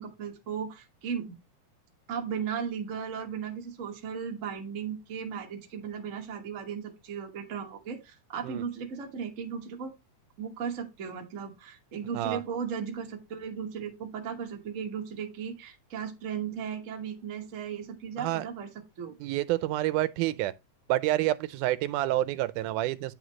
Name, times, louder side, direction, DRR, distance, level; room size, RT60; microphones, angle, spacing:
voice 1, 0.0-1.3 2.1-9.9 10.4-18.7 19.0-19.2, right 7 dB, 60° right, 0.8 m, -36 dB
voice 2, 19.2-20.5 20.9-23.1, right 15 dB, 90° right, 2.1 m, -28 dB
9.3 x 5.1 x 3.0 m
omnidirectional pair, 3.5 m